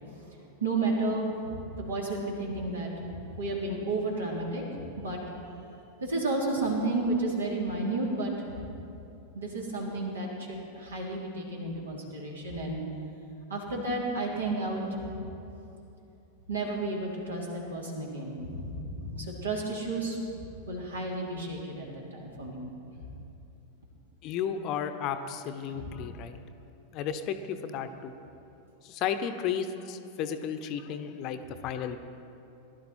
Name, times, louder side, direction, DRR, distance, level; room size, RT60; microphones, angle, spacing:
voice 1, 0.6-5.2 6.0-8.3 9.3-12.8 13.5-15.1 16.5-20.2 20.6-22.6 25.7-25.9, right 2 dB, 70° right, -2 dB, 3.3 m, -32 dB
voice 2, 24.2-26.4 26.9-28.1 28.8-32.0, left 8 dB, 40° left, 9 dB, 0.8 m, -33 dB
19.0 x 12.0 x 4.4 m, 2.8 s
figure-of-eight pair, 90°, 0 cm